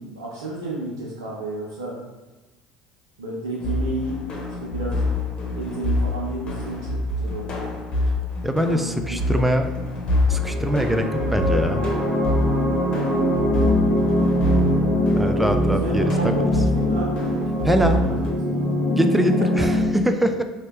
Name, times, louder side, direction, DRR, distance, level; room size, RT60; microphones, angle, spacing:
voice 1, 0.0-1.9 3.2-4.2 4.6-5.0 5.5-7.5 8.5-9.4 14.1-14.7 15.8-17.1 17.6-18.3, right 2 dB, 90° right, -5 dB, 0.7 m, -31 dB
sound 1, 3.6-18.3, left 2 dB, 45° left, 1.1 m, -26 dB
voice 2, 8.4-9.7 10.3-11.8 15.2-16.1 17.6-18.0 19.0-20.4, equal, 5° right, 6 dB, 0.4 m, -23 dB
sound 2, 10.3-19.9, equal, 30° left, 1.3 m, -22 dB
3.2 x 2.8 x 3.1 m, 1.1 s
hypercardioid pair, 70°, 2 cm